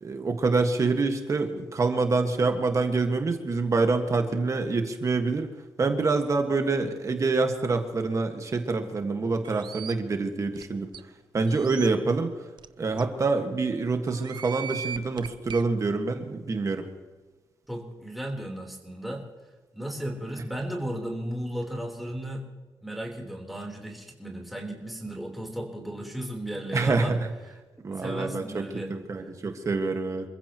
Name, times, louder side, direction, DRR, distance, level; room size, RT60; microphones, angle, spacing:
voice 1, 0.0-5.5 5.8-10.9 11.3-12.3 12.8-16.9 26.7-27.2 27.8-30.3, right 3 dB, 40° right, 5 dB, 1.7 m, -26 dB
sound 1, 9.4-9.9 10.6-10.7 10.9-11.0 11.5-11.9 12.6-12.7 13.0-13.1 14.1-15.6, right 8 dB, 60° right, 0.7 m, -38 dB
voice 2, 17.7-19.2 19.7-22.4 22.8-27.1 27.9-28.9, right 1 dB, ahead, -1 dB, 3.7 m, -35 dB
27.5 x 15.5 x 3.0 m, 1.3 s
wide cardioid pair, 150°, 9 cm